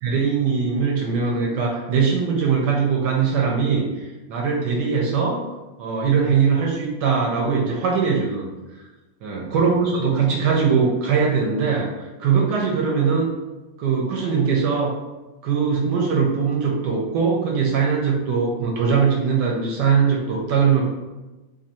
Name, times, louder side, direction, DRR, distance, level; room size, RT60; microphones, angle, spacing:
voice 1, 0.0-5.4 5.8-8.4 9.2-13.3 13.8-14.9 15.4-20.9, right 5 dB, 70° right, -1 dB, 1.1 m, -21 dB
3.2 x 2.5 x 4.1 m, 1.1 s
omnidirectional pair, 2.1 m